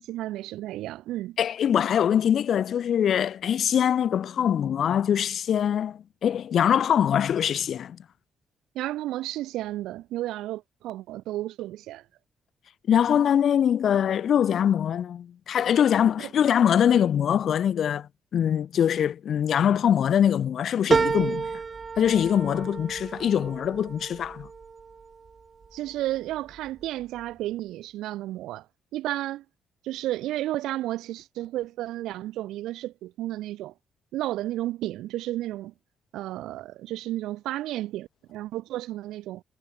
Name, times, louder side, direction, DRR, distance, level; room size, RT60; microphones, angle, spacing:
voice 1, 0.1-1.4 8.8-12.0 16.2-16.3 25.7-28.7 28.9-29.4 29.8-33.7 34.1-35.7 36.1-39.4, right 15 dB, 90° right, 3.6 m, -32 dB
voice 2, 1.4-8.0 12.9-21.5 22.0-24.5, left 9 dB, 60° left, 0.9 m, -23 dB
sound 1, 20.9-25.7 26.2-26.9 27.2-27.3, right 5 dB, 35° right, 2.2 m, -30 dB
cardioid pair, 90°, 0 cm